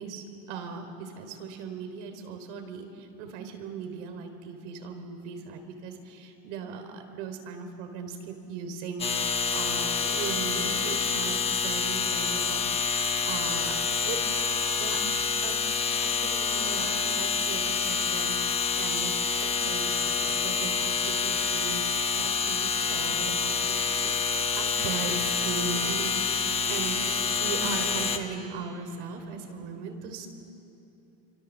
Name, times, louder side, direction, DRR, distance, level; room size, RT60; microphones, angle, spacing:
voice 1, 0.0-12.7 13.2-14.2 14.8-15.0 15.4-15.5 16.0-18.4 18.8-19.2 19.4-26.2 26.7-30.3, right 5 dB, 90° right, 6 dB, 3.6 m, -38 dB
sound 1, 9.0-28.2, left 5 dB, 15° left, 1.2 m, -27 dB
27.5 x 25.0 x 7.3 m, 2.8 s
cardioid pair, 165°, 34 cm